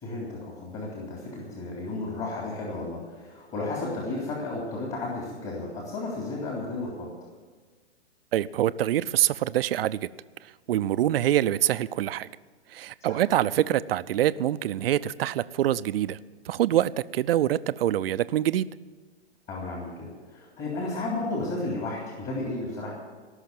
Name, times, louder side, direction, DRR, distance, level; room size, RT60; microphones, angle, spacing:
voice 1, 0.0-7.1 13.1-13.2 19.5-22.9, left 2 dB, 25° left, -3 dB, 3.4 m, -33 dB
voice 2, 8.3-10.1 10.7-12.3 12.7-16.2 16.5-18.7, right 12 dB, 55° right, 15 dB, 0.6 m, -25 dB
18.5 x 6.5 x 9.5 m, 1.4 s
hypercardioid pair, 135°, 34 cm